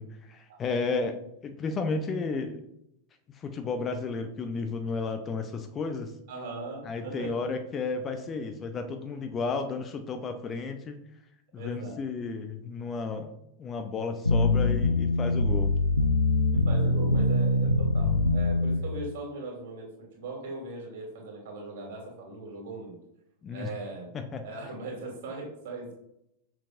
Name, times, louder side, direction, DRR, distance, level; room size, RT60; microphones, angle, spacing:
voice 1, 0.0-2.6 3.4-6.1 6.8-11.0 11.5-13.3 13.6-15.7 23.4-23.7 24.1-24.4, left 4 dB, 25° left, 6 dB, 0.6 m, -33 dB
voice 2, 6.3-7.4 11.6-12.0 16.5-19.9 20.2-23.0 23.5-24.1 24.4-26.0, right 2 dB, 55° right, 0 dB, 2.4 m, -39 dB
sound 1, 14.2-18.8, left 2 dB, 85° left, 0.5 m, -23 dB
6.5 x 5.9 x 2.5 m, 0.79 s
figure-of-eight pair, 90°, 0 cm